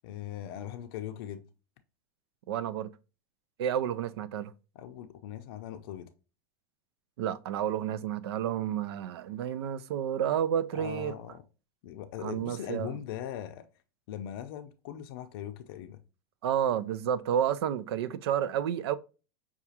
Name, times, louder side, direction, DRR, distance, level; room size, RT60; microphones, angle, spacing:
voice 1, 0.0-1.4 4.7-6.1 10.7-11.4 11.8-13.7 14.1-16.0, left 10 dB, 65° left, 0.5 m, -40 dB
voice 2, 2.5-2.9 3.6-4.5 7.2-11.1 12.2-12.9 16.4-19.0, right 9 dB, 80° right, 0.4 m, -30 dB
5.7 x 2.4 x 2.7 m
supercardioid pair, 135°, 13 cm